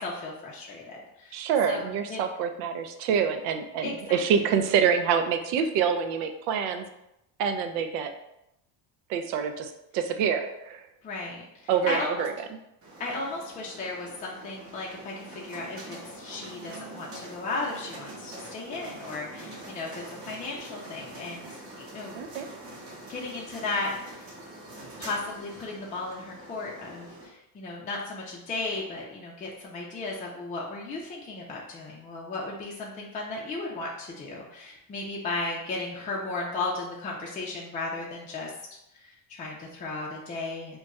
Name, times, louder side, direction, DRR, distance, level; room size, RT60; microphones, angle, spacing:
voice 1, 0.0-1.4 1.7-1.8 2.1-2.2 3.8-4.2 11.0-12.2 13.0-21.5 21.8-22.2 23.1-24.2 25.0-38.5 38.9-40.8, left 3 dB, 20° left, -3 dB, 0.4 m, -35 dB
voice 2, 1.3-6.8 7.4-8.1 9.1-10.9 11.7-12.5 22.1-22.5, right 7 dB, 90° right, 7 dB, 0.5 m, -26 dB
sound 1, 12.8-27.3, right 1 dB, 30° right, 0.8 m, -44 dB
2.4 x 2.2 x 4.0 m, 0.84 s
cardioid pair, 125°, 44 cm